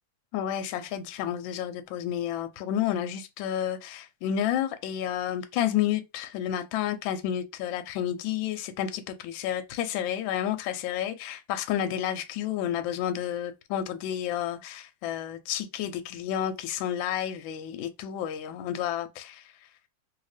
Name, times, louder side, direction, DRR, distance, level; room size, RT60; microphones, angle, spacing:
voice 1, 0.3-19.5, left 10 dB, 75° left, 1.2 m, -30 dB
3.0 x 2.8 x 3.2 m
omnidirectional pair, 2.4 m